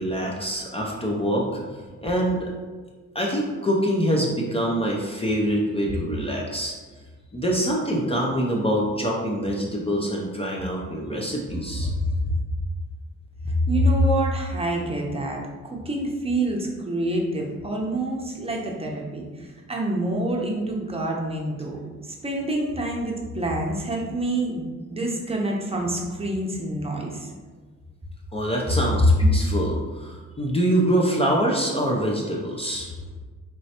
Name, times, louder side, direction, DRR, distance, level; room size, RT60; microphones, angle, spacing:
voice 1, 0.0-2.4 3.1-6.7 7.3-11.9 28.3-32.9, right 1 dB, 20° left, -2 dB, 0.6 m, -25 dB
voice 2, 13.4-21.8 22.0-27.3, right 1 dB, 20° right, -1 dB, 0.8 m, -26 dB
4.4 x 3.1 x 2.9 m, 1.4 s
cardioid pair, 90°, 30 cm